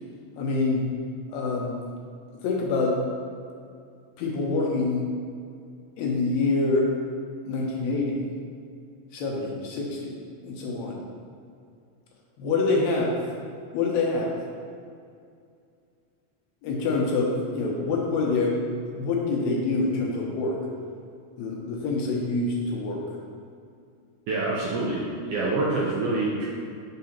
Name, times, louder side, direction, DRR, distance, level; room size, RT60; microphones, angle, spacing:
voice 1, 0.4-0.8 1.3-1.7 2.4-2.9 4.2-5.1 6.0-6.9 7.5-8.2 9.1-10.1 10.4-11.0 12.4-13.1 13.7-14.3 16.6-20.6 21.4-23.0, left 3 dB, 75° left, -1 dB, 1.7 m, -26 dB
voice 2, 24.3-26.5, right 2 dB, 80° right, -5 dB, 1.4 m, -26 dB
4.8 x 3.9 x 5.6 m, 2.3 s
omnidirectional pair, 3.5 m